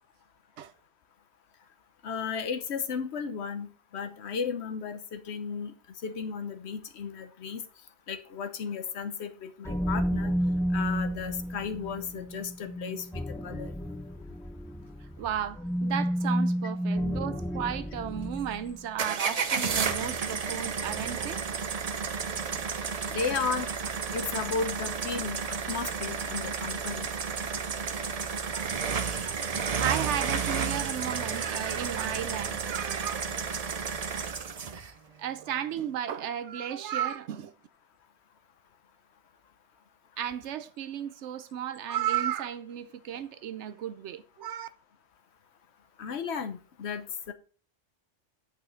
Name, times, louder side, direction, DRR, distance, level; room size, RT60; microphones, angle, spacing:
voice 1, 2.0-5.7 6.0-7.6 8.1-10.3 10.7-13.7 23.1-23.7 24.1-27.1 46.0-47.3, left 5 dB, 65° left, 1.0 m, -34 dB
sound 1, 9.6-18.8, equal, 5° left, 0.6 m, -31 dB
voice 2, 15.2-21.6 28.5-28.7 29.3-33.2 35.2-37.5 40.2-44.7, right 10 dB, 75° right, 0.9 m, -34 dB
sound 2, 19.0-34.9, right 6 dB, 40° right, 0.6 m, -32 dB
8.7 x 4.2 x 5.1 m
omnidirectional pair, 1.2 m